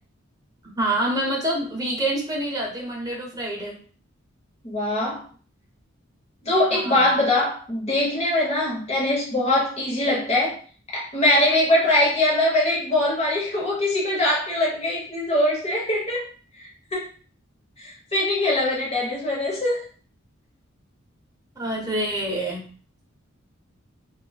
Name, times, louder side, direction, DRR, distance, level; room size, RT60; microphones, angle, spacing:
voice 1, 0.8-3.8 6.7-7.2 21.6-22.7, right 1 dB, 20° right, -1 dB, 0.7 m, -27 dB
voice 2, 4.6-5.2 6.5-10.6 10.9-16.2 16.6-17.1 17.8-19.9, left 1 dB, 30° left, -4 dB, 0.9 m, -22 dB
2.8 x 2.3 x 2.3 m, 0.42 s
head